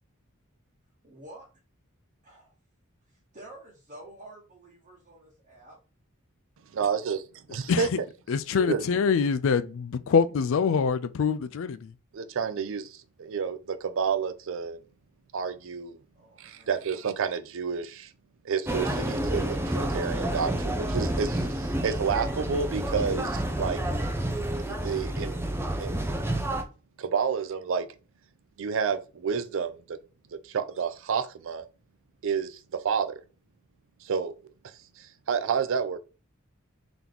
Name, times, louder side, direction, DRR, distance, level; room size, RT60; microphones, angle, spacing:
voice 1, 1.0-1.5 2.2-2.5 3.3-5.8 16.1-16.9, right 1 dB, 35° right, 1.1 m, -49 dB
voice 2, 6.7-7.2 7.5-7.9 8.6-8.8 12.1-14.8 15.3-16.0 16.4-18.1 18.4-23.8 24.7-25.4 25.8-26.1 27.0-27.9 28.6-30.0 30.4-31.6 32.2-33.2 34.0-34.3 35.0-36.0, right 6 dB, 65° right, 0.5 m, -30 dB
voice 3, 7.7-8.0 8.3-12.0, left 6 dB, 65° left, 0.4 m, -25 dB
sound 1, 18.7-26.6, right 1 dB, 10° right, 0.5 m, -29 dB
3.9 x 2.9 x 3.5 m
head